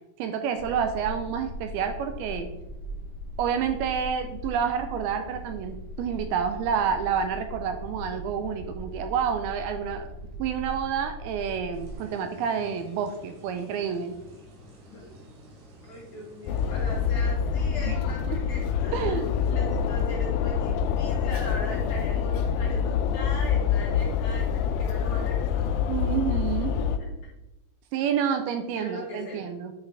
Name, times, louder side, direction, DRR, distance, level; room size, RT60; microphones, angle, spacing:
voice 1, 0.2-2.5 3.4-10.1 10.4-14.2 17.9-18.0 18.3-18.4 18.9-19.3 25.9-26.7 27.9-29.7, right 7 dB, 80° right, 7 dB, 2.3 m, -29 dB
sound 1, 0.6-11.9, equal, 30° left, 2.9 m, -39 dB
sound 2, 11.7-17.0, equal, 65° right, 3.6 m, -50 dB
voice 2, 14.9-15.2 15.8-19.2 19.5-25.8 26.7-27.1 28.7-29.5, left 1 dB, 65° left, -3 dB, 2.1 m, -39 dB
sound 3, 16.5-27.0, left 7 dB, 85° left, 2.8 m, -26 dB
9.9 x 5.8 x 3.3 m, 0.91 s
omnidirectional pair, 4.9 m